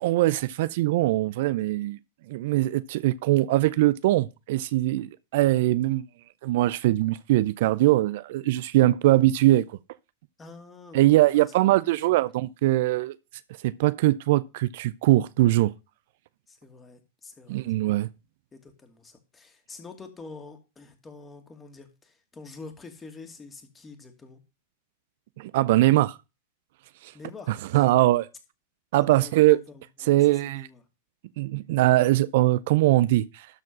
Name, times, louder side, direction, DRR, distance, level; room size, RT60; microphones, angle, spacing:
voice 1, 0.0-2.0 2.3-6.1 6.4-9.7 10.9-13.2 13.6-15.7 17.5-18.1 25.4-26.2 27.0-27.1 27.5-28.3 28.9-29.6 30.1-30.7 31.4-33.5, right 16 dB, 60° right, 0.5 m, -22 dB
voice 2, 10.4-11.5 16.5-17.7 18.5-24.4 27.1-28.0 29.0-30.8, left 4 dB, 20° left, 2.5 m, -46 dB
12.5 x 4.5 x 5.9 m
hypercardioid pair, 100°, 0 cm